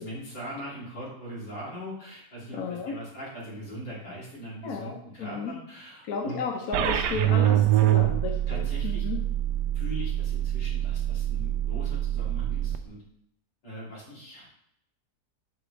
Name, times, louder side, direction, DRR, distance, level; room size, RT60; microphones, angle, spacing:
voice 1, 0.0-6.4 8.5-9.0 9.7-13.0 13.6-14.5, equal, 85° left, -7 dB, 3.7 m, -41 dB
voice 2, 2.5-2.9 4.6-5.5 6.0-9.2, left 5 dB, 65° left, 1 dB, 1.3 m, -33 dB
sound 1, 6.7-12.8, right 12 dB, 90° right, 1.2 m, -25 dB
7.6 x 5.7 x 3.4 m, 0.77 s
omnidirectional pair, 1.8 m